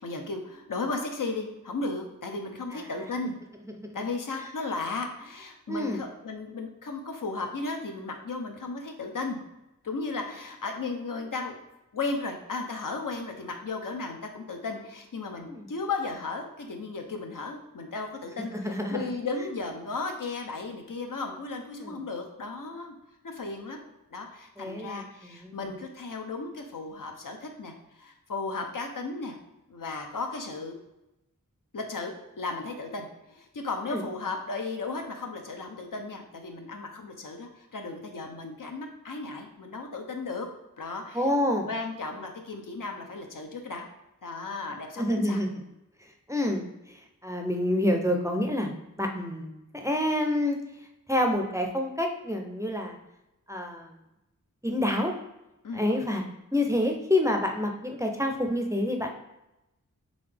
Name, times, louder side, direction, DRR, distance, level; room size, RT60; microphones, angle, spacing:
voice 1, 0.0-3.3 3.9-9.4 9.8-11.6 11.9-22.9 23.2-29.4 29.7-30.7 31.7-40.5 40.8-41.3 41.7-43.9 44.2-45.4 55.6-55.8, left 3 dB, 70° left, 4 dB, 0.7 m, -35 dB
voice 2, 2.7-3.1 3.8-4.0 5.7-6.0 15.5-15.7 18.5-19.0 21.7-22.0 24.6-25.7 33.9-34.0 41.1-41.7 45.0-45.6 46.3-46.6 47.2-48.7 49.0-50.6 51.1-53.0 53.5-53.9 54.6-55.1 55.7-56.2 56.5-59.2, left 1 dB, 10° right, 2 dB, 0.5 m, -28 dB
3.9 x 3.5 x 3.4 m, 0.91 s
wide cardioid pair, 75°, 33 cm